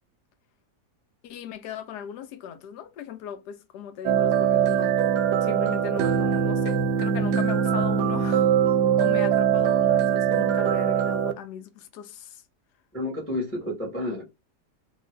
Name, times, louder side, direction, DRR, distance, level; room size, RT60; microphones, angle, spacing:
voice 1, 1.2-5.0 5.4-8.5 9.0-12.4, left 9 dB, 80° left, 1.1 m, -37 dB
sound 1, 4.1-11.3, right 8 dB, 85° right, 1.2 m, -22 dB
voice 2, 12.9-14.2, left 1 dB, 10° left, 0.8 m, -30 dB
2.8 x 2.6 x 3.1 m
omnidirectional pair, 1.8 m